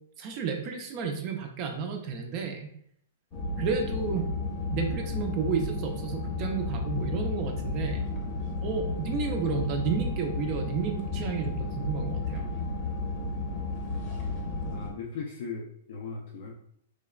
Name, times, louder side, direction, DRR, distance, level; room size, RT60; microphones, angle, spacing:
voice 1, 0.2-2.7 3.6-4.3 4.7-8.1 8.6-12.4, right 5 dB, 35° right, 4 dB, 0.4 m, -31 dB
sound 1, 3.3-14.9, left 3 dB, 30° left, 0.7 m, -32 dB
voice 2, 14.7-16.5, left 5 dB, 65° left, 0 dB, 0.4 m, -38 dB
3.1 x 2.0 x 2.3 m, 0.69 s
hypercardioid pair, 145°, 0 cm